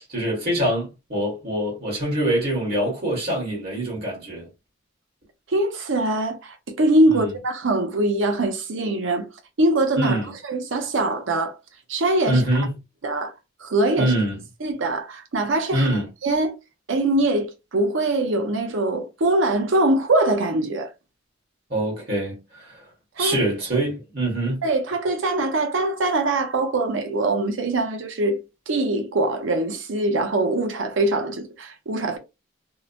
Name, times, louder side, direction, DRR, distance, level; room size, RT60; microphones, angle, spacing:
voice 1, 0.0-4.5 7.1-7.3 10.0-10.3 12.3-12.7 14.0-14.4 15.7-16.1 21.7-22.9 23.2-24.6, right 1 dB, 50° right, 1.3 m, -24 dB
voice 2, 5.5-9.3 9.6-11.6 11.9-12.4 13.0-13.3 13.6-14.1 14.6-15.9 16.2-16.5 16.9-20.9 23.2-23.4 24.6-28.4 28.7-32.2, right 2 dB, 70° right, 0.6 m, -22 dB
2.7 x 2.1 x 2.6 m
head